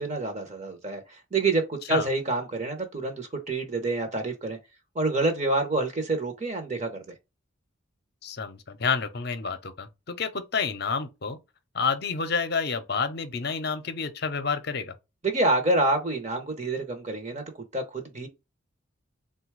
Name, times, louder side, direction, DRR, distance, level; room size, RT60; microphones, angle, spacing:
voice 1, 0.0-4.6 4.9-7.1 15.2-17.4 17.7-18.3, right 2 dB, 35° right, 0.8 m, -27 dB
voice 2, 8.2-11.4 11.7-14.9, left 5 dB, 50° left, 0.6 m, -29 dB
3.9 x 2.3 x 4.6 m
head